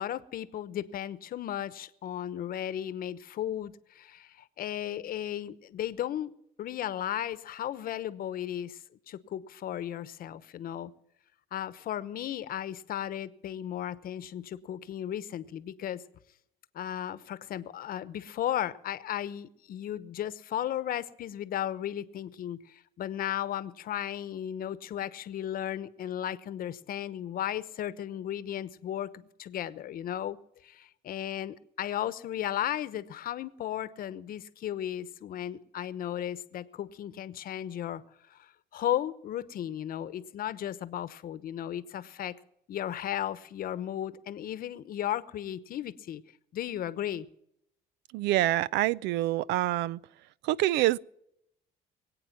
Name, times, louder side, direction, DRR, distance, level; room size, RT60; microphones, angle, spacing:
voice 1, 0.0-10.9 11.5-16.0 16.7-30.4 30.6-38.0 38.3-42.3 42.7-46.2 46.5-47.3, left 11 dB, 60° left, 1.0 m, -35 dB
voice 2, 48.1-50.0 50.4-51.0, right 15 dB, 90° right, 0.5 m, -26 dB
22.5 x 8.7 x 6.0 m
cardioid pair, 110°, 17 cm